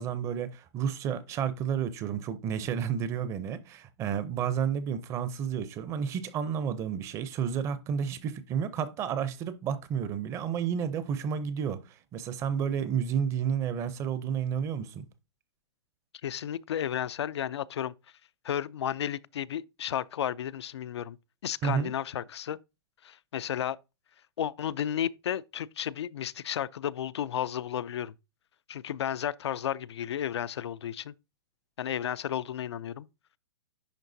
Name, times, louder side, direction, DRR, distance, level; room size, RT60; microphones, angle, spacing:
voice 1, 0.0-15.1 21.6-21.9, right 7 dB, 20° right, 0.5 m, -31 dB
voice 2, 16.2-17.9 18.4-21.2 21.4-22.6 23.0-23.8 24.4-28.1 28.7-31.1 31.8-33.1, left 10 dB, 85° left, 0.4 m, -33 dB
10.5 x 3.7 x 2.6 m
hypercardioid pair, 150°, 14 cm